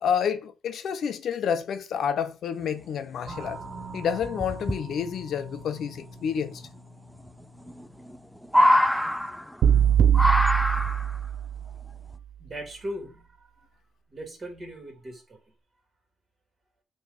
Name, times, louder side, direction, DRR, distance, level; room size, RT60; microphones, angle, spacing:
voice 1, 0.0-3.6 3.9-6.6, left 7 dB, 65° left, 0.7 m, -29 dB
sound 1, 3.1-3.2 3.5-3.6 4.2-4.8 6.3-6.4 7.7-8.2 8.4-9.7 10.1-11.2 12.1-12.2, left 1 dB, ahead, 0.4 m, -23 dB
sound 2, 3.3-9.6, right 2 dB, 50° right, 1.7 m, -44 dB
sound 3, 9.6-11.8, right 9 dB, 70° right, 0.6 m, -22 dB
voice 2, 12.4-13.3 14.1-15.4, equal, 30° right, 3.0 m, -38 dB
5.9 x 3.1 x 5.5 m
cardioid pair, 90°, 0 cm